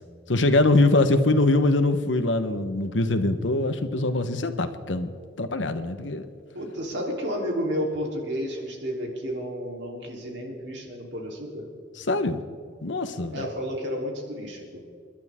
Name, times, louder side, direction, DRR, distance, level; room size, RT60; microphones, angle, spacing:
voice 1, 0.3-5.1 5.4-6.3 12.0-12.4 12.8-13.5, left 2 dB, 85° left, 9 dB, 1.1 m, -23 dB
voice 2, 6.5-11.6 13.3-14.8, equal, 70° right, -1 dB, 3.6 m, -31 dB
29.0 x 11.5 x 3.7 m, 2.1 s
head